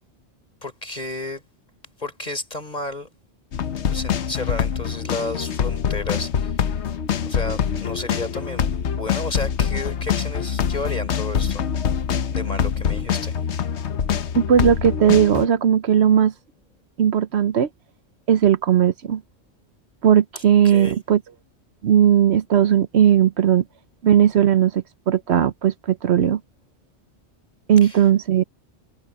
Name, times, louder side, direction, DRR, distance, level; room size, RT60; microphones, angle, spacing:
voice 1, 0.6-1.4 2.0-3.1 3.8-6.5 7.2-11.6 12.3-13.3 20.6-21.0 27.8-28.0, left 2 dB, 40° left, 4.2 m, -32 dB
sound 1, 3.5-15.5, left 8 dB, 75° left, 1.2 m, -24 dB
voice 2, 14.4-16.3 17.0-17.7 18.3-19.2 20.0-21.2 21.8-23.6 24.0-26.4 27.7-28.4, right 9 dB, 70° right, 1.0 m, -17 dB
omnidirectional pair, 1.2 m